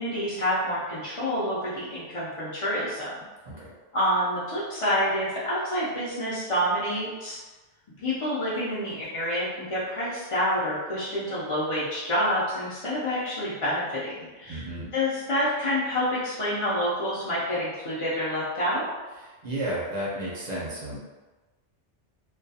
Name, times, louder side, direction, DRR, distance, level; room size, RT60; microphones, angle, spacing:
voice 1, 0.0-3.2 3.9-7.4 8.0-14.6 14.9-18.9, equal, 50° left, -9 dB, 0.4 m, -28 dB
voice 2, 14.5-14.9 19.2-21.0, right 1 dB, 45° right, -6 dB, 0.6 m, -33 dB
2.3 x 2.2 x 2.6 m, 1.2 s
omnidirectional pair, 1.2 m